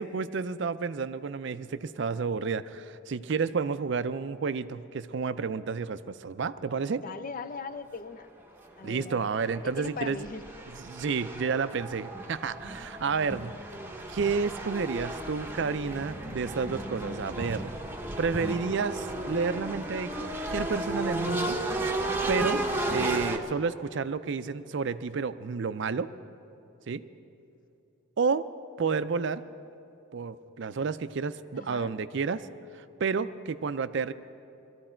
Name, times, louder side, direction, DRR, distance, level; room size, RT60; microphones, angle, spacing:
voice 1, 0.0-7.0 8.8-10.2 10.8-13.5 14.1-17.7 18.2-21.6 22.3-26.1 26.9-27.0 28.2-28.5 28.8-29.4 30.1-32.5 32.7-34.1, right 5 dB, 55° right, 13 dB, 0.4 m, -30 dB
voice 2, 7.0-8.3 8.8-9.3 9.6-10.4 31.5-31.9, left 4 dB, 40° left, 12 dB, 0.5 m, -39 dB
sound 1, 8.6-8.7 9.3-23.4, right 1 dB, 10° right, 0.8 m, -34 dB
21.0 x 14.0 x 4.4 m, 2.9 s
head